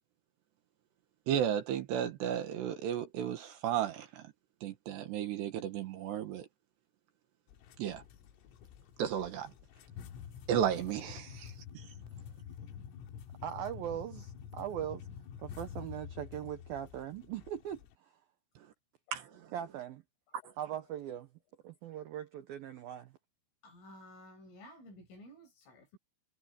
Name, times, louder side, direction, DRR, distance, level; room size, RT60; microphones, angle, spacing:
voice 1, 1.3-4.2 4.6-6.5 7.8-8.0 9.0-9.5 10.5-11.5 19.1-19.3, right 9 dB, 65° right, 3.1 m, -33 dB
sound 1, 7.5-17.9, left 8 dB, 90° left, 4.5 m, -48 dB
voice 2, 13.4-15.1 15.4-18.1 19.5-20.0 20.6-21.3 21.6-23.1, right 10 dB, 85° right, 2.1 m, -40 dB
voice 3, 23.6-26.0, left 1 dB, 70° left, 10.5 m, -53 dB
omnidirectional pair, 5.9 m